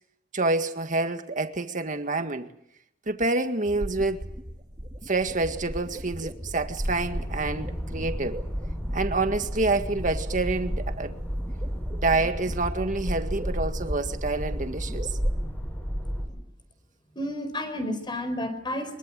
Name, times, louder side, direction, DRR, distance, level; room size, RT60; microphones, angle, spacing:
voice 1, 0.3-2.5 3.1-4.2 5.1-8.4 8.9-11.2 12.0-15.2, right 3 dB, 45° right, 1.9 m, -27 dB
sound 1, 3.7-15.4, equal, 25° right, 3.1 m, -35 dB
sound 2, 6.3-16.3, equal, 10° left, 6.8 m, -33 dB
voice 2, 17.1-19.0, left 1 dB, 25° left, 4.5 m, -31 dB
24.0 x 23.0 x 7.7 m
head